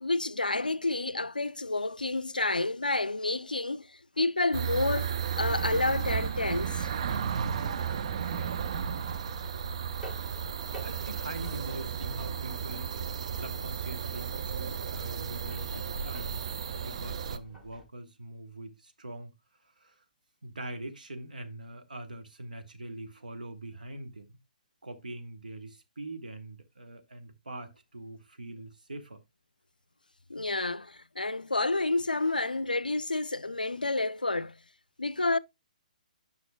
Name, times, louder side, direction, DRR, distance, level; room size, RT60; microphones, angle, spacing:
voice 1, 0.0-3.9 4.2-6.9 30.3-34.5 35.0-35.4, left 2 dB, 85° left, 0.4 m, -29 dB
sound 1, 4.5-17.4, right 7 dB, 50° right, 0.5 m, -33 dB
sound 2, 6.3-17.9, equal, 5° right, 1.4 m, -53 dB
voice 2, 10.8-16.4 16.8-19.3 19.6-20.0 20.4-24.4 24.8-29.2, right 2 dB, 75° right, 1.2 m, -43 dB
9.8 x 5.6 x 2.2 m
figure-of-eight pair, 125°, 5 cm